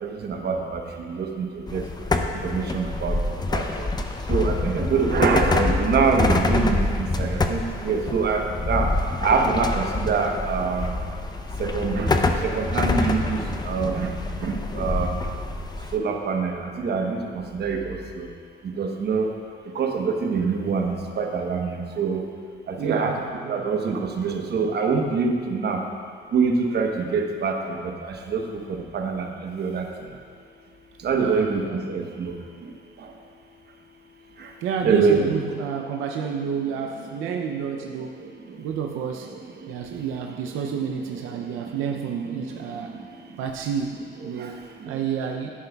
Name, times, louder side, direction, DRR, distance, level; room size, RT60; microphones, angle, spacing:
voice 1, 0.0-0.8 1.2-1.8 2.4-3.2 3.5-3.6 4.3-8.9 9.2-10.9 11.6-12.1 12.4-13.4 13.6-14.1 14.4-15.1 15.9-16.5 16.8-17.2 17.5-18.3 18.8-19.3 19.8-22.2 22.8-23.1 23.5-25.8 26.3-27.6 28.3-28.4 28.9-29.9 31.0-31.6 31.9-32.3 34.8-35.3, right 5 dB, 55° right, 3 dB, 1.0 m, -24 dB
sound 1, 1.7-15.9, left 2 dB, 20° left, 0.6 m, -26 dB
voice 2, 22.8-23.7 31.1-32.1 34.6-38.3 38.6-39.3 39.7-43.0 43.4-45.5, right 7 dB, 90° right, 3 dB, 0.5 m, -30 dB
11.0 x 9.5 x 2.3 m, 2.1 s
cardioid pair, 90°, 20 cm